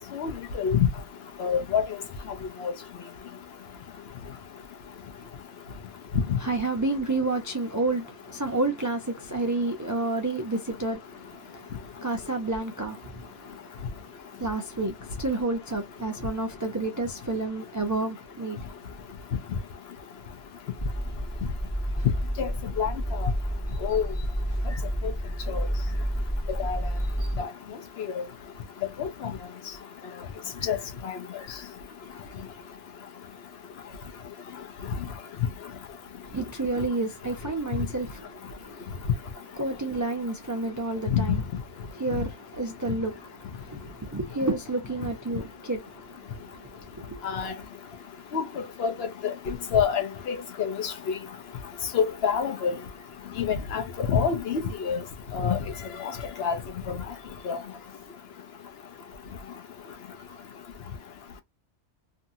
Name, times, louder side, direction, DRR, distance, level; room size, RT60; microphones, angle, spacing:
voice 1, 0.1-0.9 1.4-1.9 2.6-2.7 22.4-22.5 22.8-22.9 23.2-23.3 23.8-24.1 25.0-25.1 25.5-25.6 26.6-26.8 27.4-27.5 28.1-28.2 29.0-29.3 30.6-30.8 31.0-31.1 41.1-41.2 47.2-47.5 48.3-48.4 48.8-50.9 51.9-52.8 53.4-55.0 55.3-55.6 56.0-56.1 56.4-56.6 56.9-57.0 57.4-57.6, left 7 dB, 65° left, 0.9 m, -26 dB
voice 2, 6.4-18.7 36.3-39.1 39.5-41.4 41.9-47.2, right 2 dB, 30° right, 0.3 m, -30 dB
sound 1, 20.8-27.4, equal, 20° left, 1.2 m, -30 dB
2.7 x 2.6 x 2.6 m
omnidirectional pair, 1.2 m